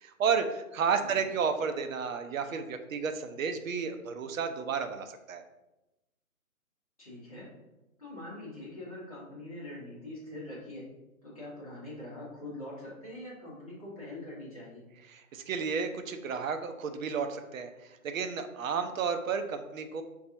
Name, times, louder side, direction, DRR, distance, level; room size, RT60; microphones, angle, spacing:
voice 1, 0.0-5.4 15.1-17.7 18.0-20.0, right 6 dB, 65° right, 7 dB, 0.5 m, -32 dB
voice 2, 7.0-7.5 8.0-10.8 11.2-14.8, left 1 dB, 25° left, -8 dB, 0.8 m, -43 dB
3.9 x 2.3 x 2.7 m, 0.99 s
hypercardioid pair, 170°, 43 cm